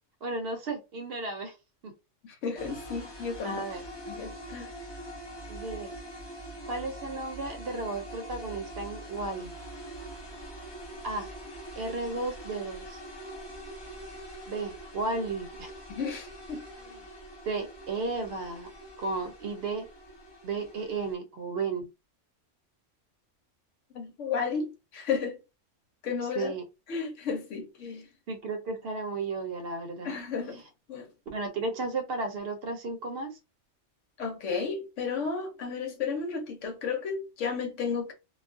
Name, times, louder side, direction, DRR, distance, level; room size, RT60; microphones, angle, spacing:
voice 1, 0.2-1.6 1.8-1.9 3.4-3.8 5.5-6.0 6.6-9.5 11.0-11.3 11.8-13.0 14.5-15.7 16.8-17.1 17.4-18.7 19.0-19.9 20.4-21.9 26.3-26.7 28.3-30.2 30.5-30.7 31.3-33.4, right 3 dB, 60° right, 0.8 m, -34 dB
voice 2, 2.4-3.6 4.1-4.7 15.9-16.7 23.9-25.4 26.0-26.5 26.9-28.0 30.0-30.6 30.9-31.1 34.2-38.1, left 5 dB, 80° left, 1.1 m, -33 dB
sound 1, 2.6-21.2, right 1 dB, 35° left, 0.4 m, -44 dB
2.3 x 2.3 x 2.5 m
omnidirectional pair, 1.3 m